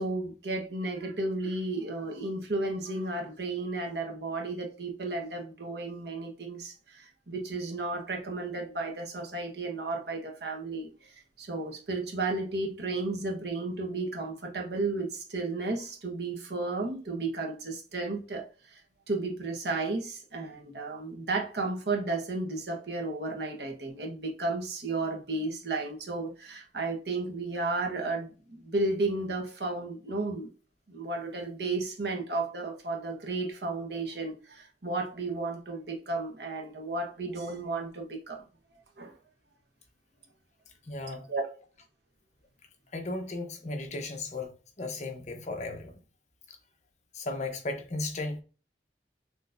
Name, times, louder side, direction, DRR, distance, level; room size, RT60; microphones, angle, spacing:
voice 1, 0.0-10.9 11.4-18.8 19.1-30.5 30.9-38.4 39.0-39.1 41.3-41.5, right 2 dB, 70° right, 1.2 m, -33 dB
voice 2, 40.9-41.3 42.9-44.5 44.8-45.9 46.5-46.6 47.1-48.4, left 2 dB, 40° left, 0.9 m, -35 dB
6.5 x 3.1 x 2.6 m
head